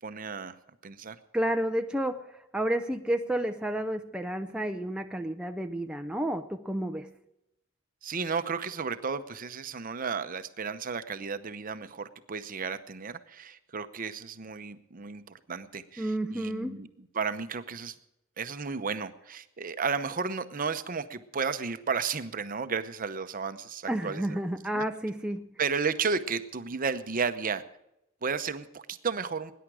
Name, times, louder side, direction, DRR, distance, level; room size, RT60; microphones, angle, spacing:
voice 1, 0.0-0.5 0.8-1.2 8.0-15.2 15.5-16.9 17.1-17.9 18.4-24.4 24.7-24.8 25.6-27.6 28.2-29.5, right 5 dB, 40° right, 11 dB, 0.8 m, -33 dB
voice 2, 1.3-7.1 16.0-16.8 23.9-25.5, right 1 dB, 5° right, 5 dB, 0.5 m, -31 dB
20.0 x 10.0 x 4.8 m, 0.87 s
head